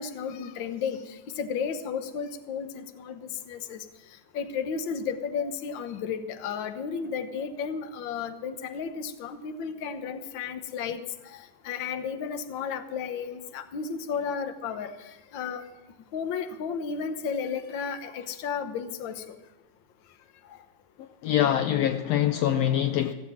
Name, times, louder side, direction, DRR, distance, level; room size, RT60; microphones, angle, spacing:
voice 1, 0.0-3.8 4.3-15.7 16.1-19.4 20.5-20.6, left 6 dB, 70° left, 1.1 m, -33 dB
voice 2, 21.0-23.1, left 11 dB, 90° left, 1.4 m, -24 dB
16.0 x 7.7 x 8.3 m
omnidirectional pair, 3.5 m